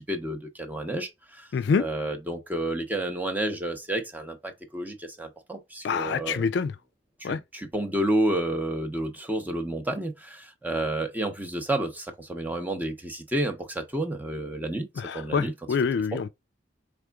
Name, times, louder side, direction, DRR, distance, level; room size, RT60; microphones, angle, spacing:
voice 1, 0.0-1.5 1.8-6.5 7.2-14.9 15.1-15.5, right 1 dB, 10° right, 0.8 m, -30 dB
voice 2, 1.5-1.9 5.8-6.7 7.2-7.4 15.0-16.3, left 5 dB, 60° left, 0.3 m, -26 dB
4.9 x 3.4 x 2.3 m
head